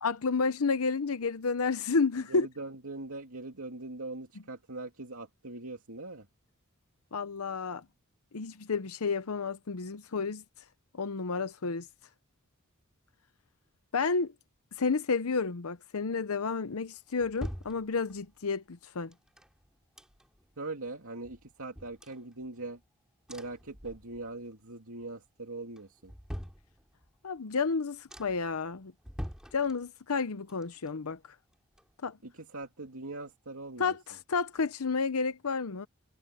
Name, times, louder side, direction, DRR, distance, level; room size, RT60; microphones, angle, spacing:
voice 1, 0.0-2.5 7.1-7.8 8.3-10.4 10.9-11.9 13.9-14.3 14.8-19.1 27.2-28.9 29.5-31.2 32.0-32.2 33.8-35.9, left 4 dB, 80° left, 0.8 m, -31 dB
voice 2, 2.3-6.3 20.6-22.8 23.3-26.1 32.2-33.9, right 2 dB, 75° right, 2.6 m, -41 dB
sound 1, 16.6-18.4 19.1-20.5 20.9-21.0 21.2-22.9 23.3-24.5 24.8-25.3 25.7-27.2 27.6-27.7 28.1-28.6 29.0-30.2 30.5-32.3 32.6-32.7, equal, 5° right, 7.1 m, -45 dB
head